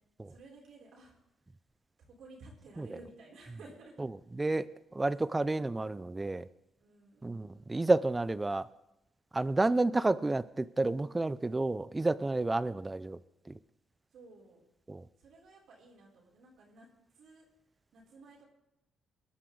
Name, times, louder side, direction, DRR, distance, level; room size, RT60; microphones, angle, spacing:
voice 1, 0.3-1.1 2.1-3.9 5.0-5.5 6.8-7.8 14.1-14.6 15.2-16.9 17.1-17.4 17.9-18.4, right 2 dB, 70° right, -2 dB, 4.0 m, -55 dB
voice 2, 4.3-4.7 4.9-6.5 7.2-8.7 9.3-13.2 14.9-15.0, right 2 dB, 20° right, 17 dB, 0.6 m, -30 dB
20.5 x 11.5 x 3.9 m, 0.89 s
cardioid pair, 90°, 0 cm